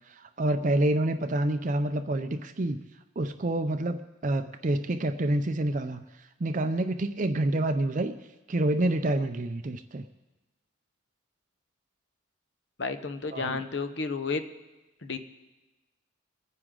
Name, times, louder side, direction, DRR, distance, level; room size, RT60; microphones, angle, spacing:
voice 1, 0.1-2.8 3.2-8.1 8.5-10.0 13.3-13.6, right 1 dB, 40° right, 8 dB, 0.5 m, -28 dB
voice 2, 12.8-14.4 15.0-15.2, left 4 dB, 60° left, 9 dB, 0.9 m, -31 dB
24.0 x 9.6 x 3.8 m, 1.1 s
head